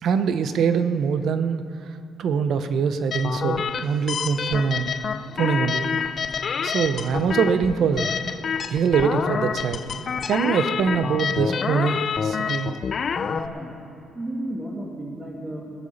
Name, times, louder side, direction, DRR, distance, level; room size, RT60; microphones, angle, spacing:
voice 1, 0.0-5.0 5.4-5.9 6.6-8.2 8.7-9.8 10.2-12.8, right 6 dB, 70° right, 10 dB, 0.9 m, -23 dB
sound 1, 3.1-13.5, left 6 dB, 50° left, 0.6 m, -27 dB
voice 2, 13.3-13.8 14.1-15.6, right 1 dB, 25° right, -3 dB, 2.4 m, -33 dB
19.5 x 8.3 x 7.1 m, 2.7 s
cardioid pair, 90°, 0 cm